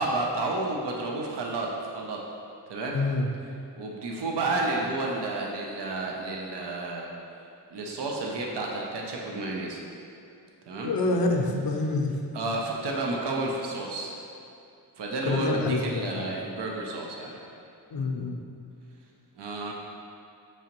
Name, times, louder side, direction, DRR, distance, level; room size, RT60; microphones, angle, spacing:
voice 1, 0.0-2.2 2.7-3.0 3.8-7.1 7.7-9.8 10.7-10.9 12.3-14.1 15.0-17.4 19.4-19.7, right 2 dB, 70° right, -1 dB, 0.6 m, -31 dB
voice 2, 2.9-3.3 10.8-12.2 15.2-16.3 17.9-18.4, left 2 dB, 55° left, 2 dB, 0.5 m, -27 dB
4.7 x 2.9 x 2.9 m, 2.6 s
wide cardioid pair, 65°, 43 cm